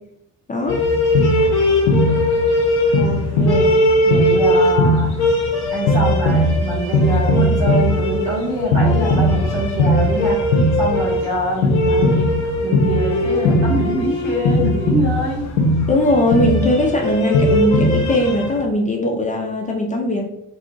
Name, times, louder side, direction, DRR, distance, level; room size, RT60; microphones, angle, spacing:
voice 1, 0.5-0.8 15.9-20.2, left 1 dB, 20° left, 0 dB, 0.3 m, -19 dB
sound 1, 0.7-18.6, left 1 dB, 70° left, 0.6 m, -18 dB
voice 2, 2.9-3.7 4.0-5.1 5.7-12.3 12.6-15.4, equal, 80° right, -4 dB, 1.1 m, -24 dB
2.6 x 2.3 x 2.5 m, 0.82 s
figure-of-eight pair, 40°, 47 cm